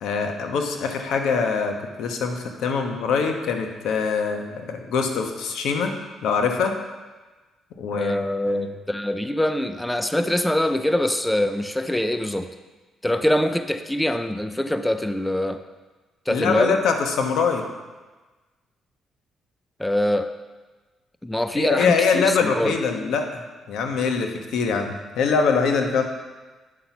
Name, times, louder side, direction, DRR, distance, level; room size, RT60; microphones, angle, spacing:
voice 1, 0.0-5.9 6.2-6.7 7.8-8.1 8.5-8.7 16.3-17.6 21.5-23.4 23.7-26.0, left 5 dB, 80° left, 4 dB, 1.2 m, -23 dB
voice 2, 7.9-12.5 13.0-15.6 16.3-16.8 19.8-20.3 21.2-22.8, left 1 dB, 5° left, 9 dB, 0.5 m, -24 dB
9.8 x 5.8 x 6.0 m, 1.3 s
cardioid pair, 90°, 0 cm